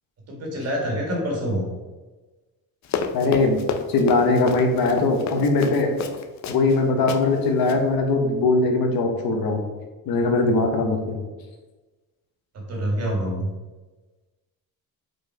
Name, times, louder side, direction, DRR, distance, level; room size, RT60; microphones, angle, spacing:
voice 1, 0.3-1.7 12.7-13.5, equal, 40° right, -1 dB, 2.0 m, -26 dB
Run, 2.8-6.8 7.1-7.2 7.6-7.8, left 6 dB, 50° left, 0.6 m, -30 dB
voice 2, 3.1-3.6 3.9-5.9 6.5-9.6 10.1-11.2, left 3 dB, 75° left, 4 dB, 1.2 m, -20 dB
5.2 x 4.7 x 4.7 m, 1.2 s
cardioid pair, 170°, 37 cm